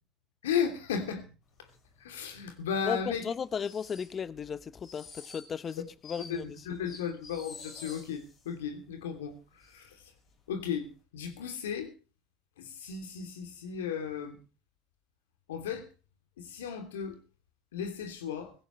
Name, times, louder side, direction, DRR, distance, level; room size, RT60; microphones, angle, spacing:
voice 1, 0.4-1.3 2.0-3.2 6.3-9.3 9.6-9.9 10.5-11.9 12.6-14.4 15.5-15.9 16.4-17.2 17.7-18.5, left 7 dB, 85° left, 3.0 m, -35 dB
sound 1, 1.7-2.4 2.8-8.5 8.9-9.0 9.3-9.9 10.2-10.5 10.9-11.0, left 4 dB, 55° left, 6.5 m, -50 dB
voice 2, 2.8-6.6, left 7 dB, 40° left, 1.0 m, -35 dB
17.5 x 16.0 x 3.2 m
hypercardioid pair, 70°, 0 cm